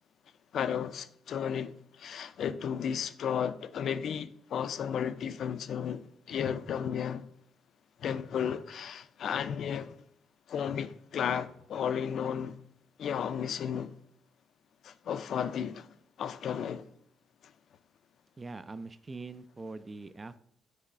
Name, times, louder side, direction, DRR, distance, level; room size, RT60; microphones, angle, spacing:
voice 1, 0.5-7.3 8.0-10.0 10.5-12.6 13.0-14.0 14.8-15.9 16.2-16.8, left 8 dB, 65° left, 0.4 m, -33 dB
voice 2, 18.4-20.4, right 3 dB, 25° right, 0.3 m, -43 dB
6.2 x 3.1 x 5.4 m
cardioid pair, 90°, 0 cm